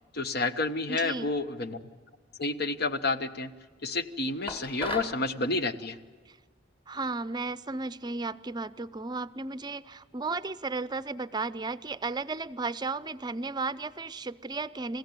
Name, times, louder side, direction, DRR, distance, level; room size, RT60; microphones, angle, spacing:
voice 1, 0.1-1.8 2.4-3.5 3.8-6.0, left 3 dB, 55° left, 10 dB, 1.2 m, -30 dB
voice 2, 0.9-1.3 6.3-6.4 6.9-15.0, right 3 dB, 20° right, 15 dB, 0.6 m, -34 dB
sound 1, 4.5-5.2, left 1 dB, 25° left, 2.2 m, -35 dB
29.0 x 16.0 x 9.4 m, 1.5 s
head